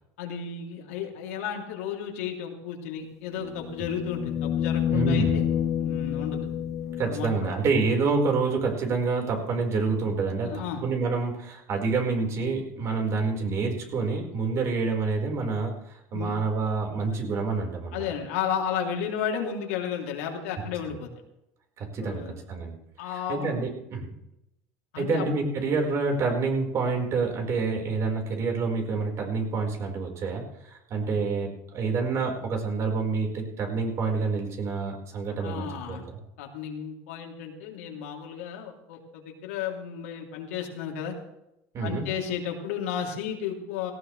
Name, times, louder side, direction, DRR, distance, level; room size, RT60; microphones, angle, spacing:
voice 1, 0.2-5.5 5.8-6.5 7.1-7.5 10.4-10.9 16.1-16.4 17.9-21.1 22.0-22.4 23.0-23.5 24.9-25.3 35.4-36.0 36.4-41.2 41.8-43.9, left 8 dB, 90° left, 1 dB, 3.2 m, -33 dB
sound 1, 3.4-7.5 9.9-10.0, left 9 dB, 45° left, 1.1 m, -28 dB
voice 2, 4.9-5.4 7.0-18.0 20.9-21.0 21.8-22.8 23.0-24.1 25.0-36.0 41.7-42.0, right 4 dB, 45° right, 2 dB, 4.8 m, -28 dB
18.0 x 17.0 x 3.4 m, 0.85 s
supercardioid pair, 105°, 7 cm